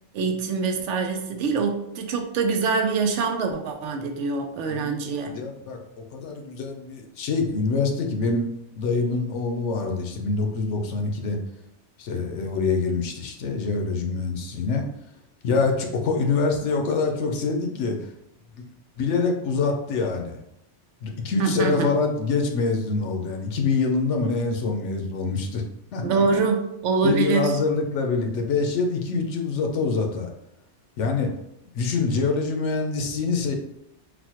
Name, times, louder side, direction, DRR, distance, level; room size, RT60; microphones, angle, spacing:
voice 1, 0.1-5.4 21.4-21.9 26.0-27.6, right 4 dB, 85° right, 5 dB, 0.9 m, -24 dB
voice 2, 4.7-5.8 6.1-8.5 8.7-11.4 12.0-14.8 15.4-18.1 19.0-20.4 21.0-25.6 25.9-26.4 27.0-30.3 31.0-31.3 31.7-33.6, left 4 dB, 85° left, 3 dB, 0.9 m, -25 dB
4.1 x 2.2 x 2.8 m, 0.83 s
omnidirectional pair, 1.2 m